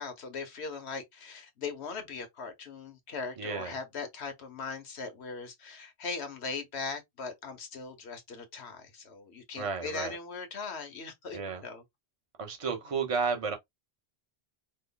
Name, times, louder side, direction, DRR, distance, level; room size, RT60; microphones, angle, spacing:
voice 1, 0.0-11.8, left 4 dB, 85° left, 1.3 m, -39 dB
voice 2, 3.4-3.7 9.6-10.2 11.3-11.6 12.4-13.6, right 5 dB, 35° right, 0.8 m, -32 dB
3.2 x 2.1 x 3.7 m
omnidirectional pair, 1.1 m